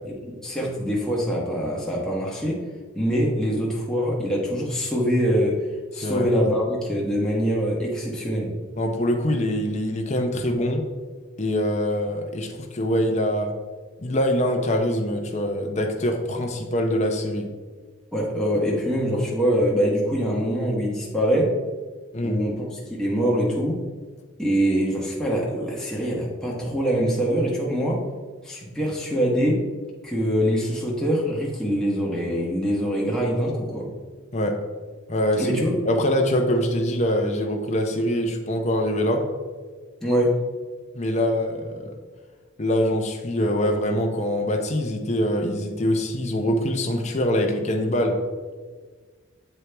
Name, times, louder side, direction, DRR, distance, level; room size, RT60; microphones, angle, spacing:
voice 1, 0.0-2.6 2.9-5.6 5.9-8.5 18.1-21.5 22.2-23.8 24.4-28.0 28.4-29.6 30.0-33.9 35.4-35.7 40.0-40.3, equal, 5° left, -5 dB, 1.1 m, -24 dB
voice 2, 6.0-6.3 8.8-10.8 11.4-13.6 14.0-17.5 22.1-22.4 34.3-34.6 35.1-35.5 35.8-39.3 40.9-41.9 42.6-48.2, equal, 35° left, 3 dB, 0.7 m, -24 dB
8.0 x 4.5 x 3.4 m, 1.4 s
head